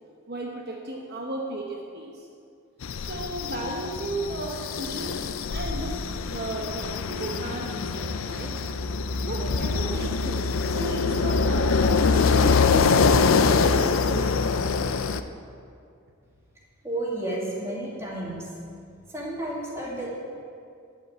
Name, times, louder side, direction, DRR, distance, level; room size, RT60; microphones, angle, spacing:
voice 1, 0.3-2.3 3.0-5.2 5.5-6.0 6.3-8.6 9.2-14.9, right 2 dB, 50° right, -1 dB, 0.9 m, -34 dB
sound 1, 2.8-15.2, left 4 dB, 70° left, 0.5 m, -24 dB
voice 2, 16.8-18.6 19.1-20.1, right 1 dB, 10° right, -5 dB, 2.2 m, -32 dB
12.0 x 5.6 x 8.4 m, 2.4 s
head